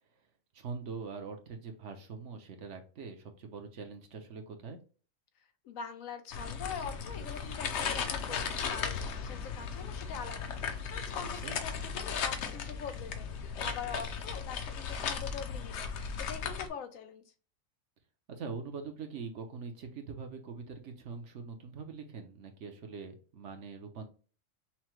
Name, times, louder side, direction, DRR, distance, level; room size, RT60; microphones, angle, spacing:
voice 1, 0.5-4.8 11.4-11.5 18.3-24.1, right 5 dB, 65° right, 5 dB, 1.1 m, -43 dB
voice 2, 5.6-17.2, left 6 dB, 85° left, 7 dB, 1.2 m, -43 dB
sound 1, 6.3-16.7, left 6 dB, 65° left, 0.9 m, -36 dB
5.7 x 2.1 x 3.0 m, 0.39 s
omnidirectional pair, 1.4 m